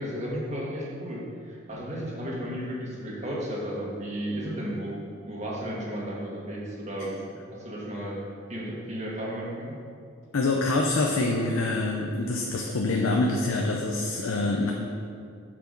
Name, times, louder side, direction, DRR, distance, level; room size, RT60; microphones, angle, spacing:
voice 1, 0.0-7.2 7.5-8.2 8.5-9.8, equal, 35° right, -4 dB, 1.5 m, -34 dB
voice 2, 10.3-14.7, left 2 dB, 80° left, 0 dB, 0.6 m, -25 dB
7.3 x 4.7 x 5.2 m, 2.3 s
head